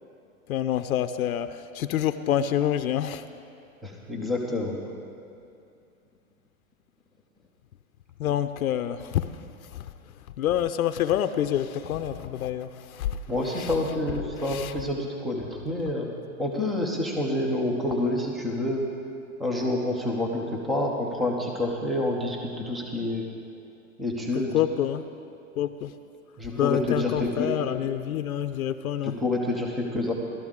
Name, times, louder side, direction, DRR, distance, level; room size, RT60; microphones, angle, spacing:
voice 1, 0.5-3.2 8.2-9.3 10.4-13.2 13.6-13.7 14.5-14.7 24.5-25.1 25.6-25.9 26.6-29.2, left 10 dB, 80° left, 10 dB, 0.6 m, -27 dB
voice 2, 3.8-4.8 13.3-16.1 16.4-18.9 19.4-23.3 24.0-24.6 26.4-27.5 29.0-30.1, left 2 dB, ahead, 0 dB, 0.4 m, -28 dB
17.0 x 12.5 x 3.6 m, 2.5 s
hypercardioid pair, 135°, 42 cm